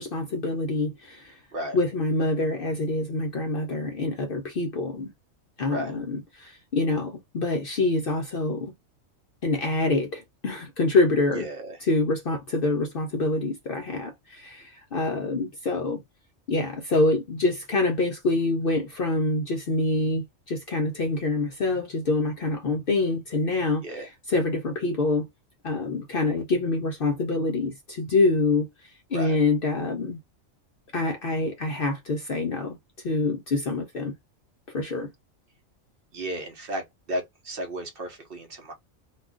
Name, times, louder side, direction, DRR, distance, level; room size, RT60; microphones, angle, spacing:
voice 1, 0.0-1.4 1.7-5.1 5.6-8.7 9.4-11.5 11.8-16.0 16.5-25.3 25.6-30.2 30.9-32.8 33.0-34.1 34.7-35.1, left 2 dB, 60° left, 0.6 m, -26 dB
voice 2, 11.3-11.8 23.8-24.1 29.1-29.4 36.1-38.7, right 1 dB, 55° right, 0.8 m, -34 dB
2.4 x 2.3 x 3.6 m
omnidirectional pair, 1.4 m